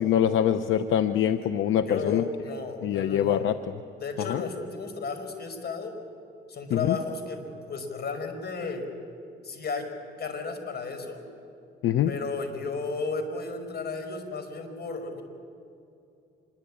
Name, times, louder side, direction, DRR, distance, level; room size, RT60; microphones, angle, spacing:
voice 1, 0.0-2.2 2.8-3.6 4.2-4.4 6.7-7.0 11.8-12.1, left 10 dB, 80° left, 10 dB, 0.9 m, -24 dB
voice 2, 1.9-3.4 4.0-6.0 6.5-8.9 9.4-9.9 10.2-11.2 12.1-15.2, left 4 dB, 55° left, 7 dB, 5.3 m, -34 dB
26.5 x 23.0 x 8.6 m, 2.6 s
cardioid pair, 90°, 20 cm